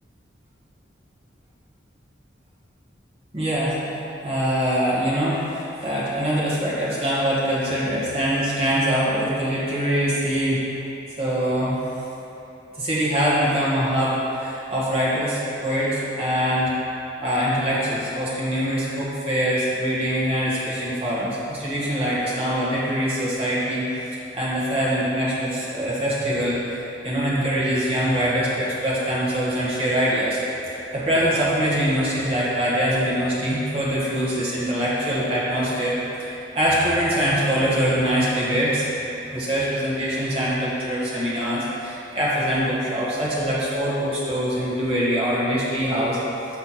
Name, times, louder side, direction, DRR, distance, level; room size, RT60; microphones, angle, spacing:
voice 1, 3.3-10.6 11.2-11.8 12.8-16.8 17.2-30.4 30.9-38.9 39.3-46.2, equal, 30° right, -8 dB, 1.5 m, -23 dB
6.0 x 5.9 x 4.2 m, 3.0 s
head